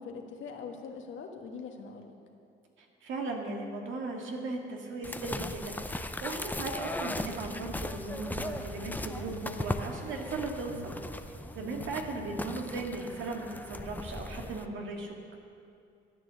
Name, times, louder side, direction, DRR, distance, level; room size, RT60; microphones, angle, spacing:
voice 1, 0.0-2.1, left 5 dB, 75° left, 2 dB, 1.6 m, -42 dB
voice 2, 2.8-10.9 11.6-15.1, right 3 dB, 75° right, 1 dB, 2.0 m, -37 dB
sound 1, 5.0-14.7, left 2 dB, 10° left, 0.5 m, -38 dB
sound 2, 7.6-14.3, right 1 dB, 60° right, 3.3 m, -47 dB
13.5 x 9.0 x 6.9 m, 2.5 s
cardioid pair, 90°, 20 cm